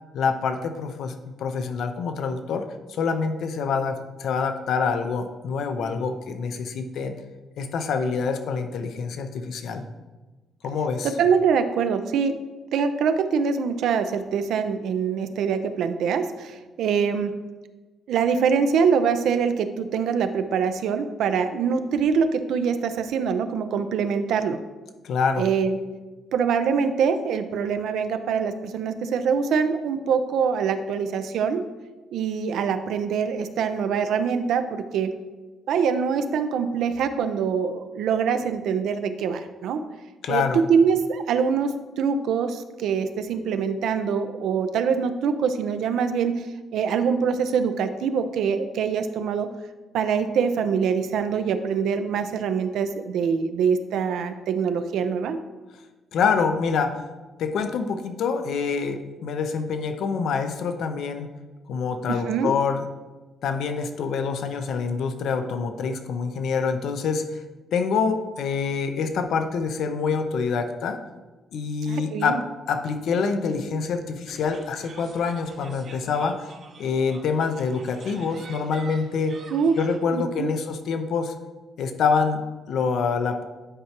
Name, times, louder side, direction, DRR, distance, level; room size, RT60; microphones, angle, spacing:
voice 1, 0.1-7.2 7.6-9.8 10.6-11.1 25.0-25.5 40.2-40.6 56.1-57.0 57.4-61.3 61.7-62.8 63.4-67.3 67.7-71.0 71.5-76.5 76.8-79.4 79.8-81.3 81.8-83.4, left 5 dB, 75° left, 8 dB, 0.6 m, -26 dB
voice 2, 11.0-12.4 12.7-17.4 18.1-24.6 25.4-25.8 26.3-31.6 32.1-35.2 35.7-39.8 40.3-49.5 49.9-55.4 62.1-62.5 71.8-72.4 79.5-79.8 80.1-80.5, right 6 dB, 80° right, 9 dB, 0.5 m, -24 dB
sound 1, 74.3-80.0, right 4 dB, 55° right, 0.8 m, -46 dB
9.9 x 4.5 x 2.9 m, 1.2 s
cardioid pair, 90°, 0 cm